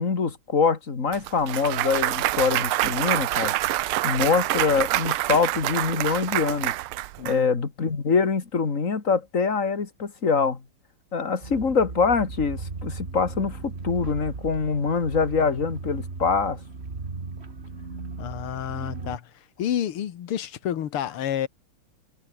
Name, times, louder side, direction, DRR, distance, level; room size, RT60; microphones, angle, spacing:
voice 1, 0.0-3.5 4.0-6.7 7.2-10.6 11.1-16.6, left 5 dB, 35° left, 2.6 m, -24 dB
Clapping / Cheering / Applause, 1.1-7.4, right 15 dB, 80° right, 1.6 m, -26 dB
voice 2, 7.2-7.5 18.2-19.3 19.6-21.5, left 10 dB, 85° left, 2.3 m, -29 dB
sound 1, 11.4-19.2, right 4 dB, 30° right, 2.4 m, -36 dB
omnidirectional pair, 2.4 m